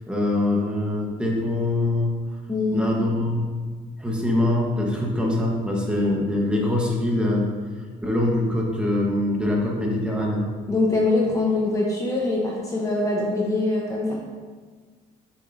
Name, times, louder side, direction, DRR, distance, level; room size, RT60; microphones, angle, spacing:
voice 1, 0.1-2.1 2.7-3.5 4.0-7.5 8.0-10.5, left 1 dB, 5° right, -2 dB, 1.3 m, -23 dB
voice 2, 2.5-2.9 10.7-14.2, left 2 dB, 20° left, -3 dB, 1.1 m, -23 dB
7.5 x 6.6 x 2.8 m, 1.5 s
cardioid pair, 110°, 17 cm